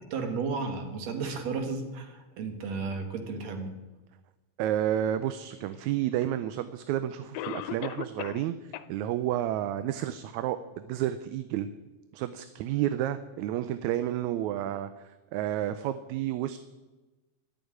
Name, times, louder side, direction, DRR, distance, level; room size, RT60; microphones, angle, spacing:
voice 1, 0.1-3.7, right 4 dB, 65° right, 5 dB, 2.7 m, -33 dB
voice 2, 4.6-11.7 12.1-16.6, right 12 dB, 80° right, 11 dB, 1.9 m, -31 dB
Cough, 6.2-6.3 7.3-8.5 8.7-8.9 9.4-9.5 10.1-10.2, left 12 dB, 80° left, 1.9 m, -36 dB
12.5 x 7.1 x 9.5 m, 1.2 s
omnidirectional pair, 3.3 m